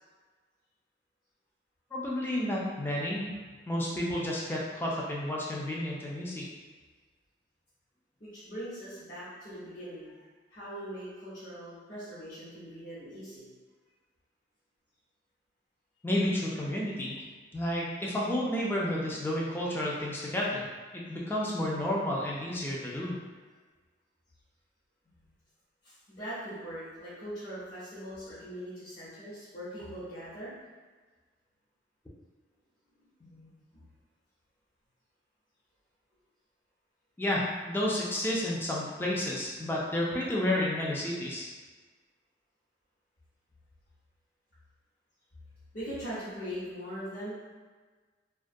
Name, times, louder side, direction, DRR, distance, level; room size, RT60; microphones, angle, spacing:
voice 1, 1.9-3.3 3.7-6.5 16.0-17.2 17.5-20.7 20.9-23.2 37.2-41.5, left 1 dB, 10° left, -4 dB, 0.3 m, -31 dB
voice 2, 8.2-10.2 10.5-13.5 22.8-23.2 25.0-25.3 25.8-30.5 33.2-33.5 45.7-47.4, equal, 45° left, -14 dB, 0.8 m, -41 dB
2.3 x 2.1 x 2.5 m, 1.4 s
head